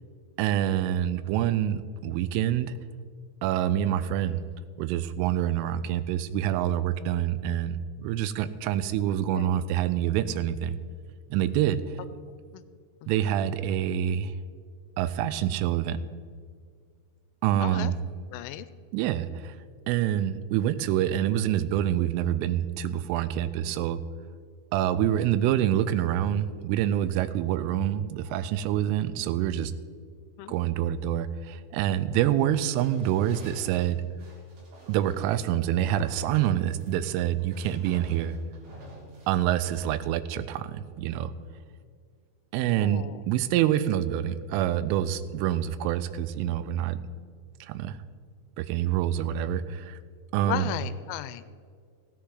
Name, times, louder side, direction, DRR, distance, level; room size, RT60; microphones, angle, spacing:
voice 1, 0.4-2.7 3.4-4.4 4.8-10.8 11.3-11.8 13.1-14.3 15.0-16.0 17.4-18.0 18.9-19.6 19.9-24.0 24.7-29.7 30.5-34.0 34.9-38.4 39.3-41.3 42.5-47.0 47.6-48.0 48.6-50.0 50.3-50.7, right 11 dB, 90° right, 14 dB, 3.1 m, -26 dB
voice 2, 17.6-17.9 18.3-18.7 30.4-30.6 42.8-43.2 50.4-51.4, left 13 dB, 85° left, 13 dB, 3.0 m, -35 dB
sound 1, 32.8-35.3 36.0-37.1 37.3-39.8, right 2 dB, 70° right, 5.4 m, -50 dB
17.0 x 9.8 x 3.9 m, 2.1 s
omnidirectional pair, 5.6 m